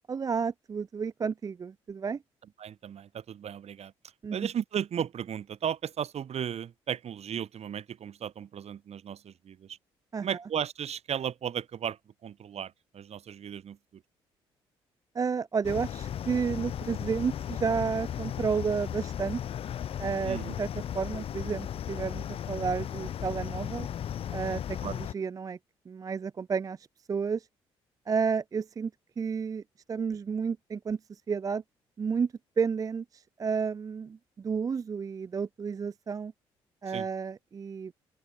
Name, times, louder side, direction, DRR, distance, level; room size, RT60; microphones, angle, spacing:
voice 1, 0.1-2.2 4.2-4.4 10.1-10.4 15.1-19.4 20.0-20.7 20.9-23.9 24.3-25.6 25.9-27.5 28.1-28.9 29.2-29.6 29.9-31.6 32.0-36.3 36.8-37.9, right 5 dB, 25° right, 0.3 m, -31 dB
voice 2, 2.6-3.9 4.3-9.8 10.2-14.0 20.2-20.6 24.8-25.0 36.9-37.1, right 9 dB, 55° right, 1.7 m, -35 dB
sound 1, 15.6-25.1, left 10 dB, 45° left, 0.4 m, -36 dB
open air
hypercardioid pair, 50°, 13 cm